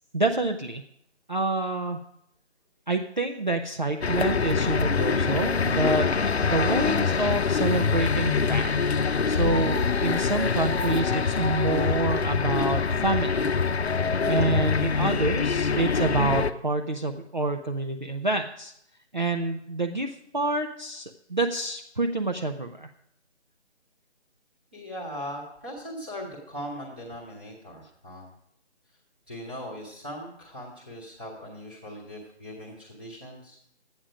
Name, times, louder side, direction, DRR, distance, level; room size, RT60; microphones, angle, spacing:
voice 1, 0.1-0.8 1.3-2.0 2.9-9.0 9.3-13.5 14.3-18.7 19.1-22.9, right 2 dB, 40° right, 3 dB, 0.5 m, -28 dB
sound 1, 4.0-16.5, left 5 dB, 65° left, 0.7 m, -25 dB
voice 2, 24.7-28.3 29.3-33.6, equal, 10° right, -7 dB, 1.0 m, -39 dB
11.5 x 8.8 x 5.0 m, 0.74 s
figure-of-eight pair, 180°, 35 cm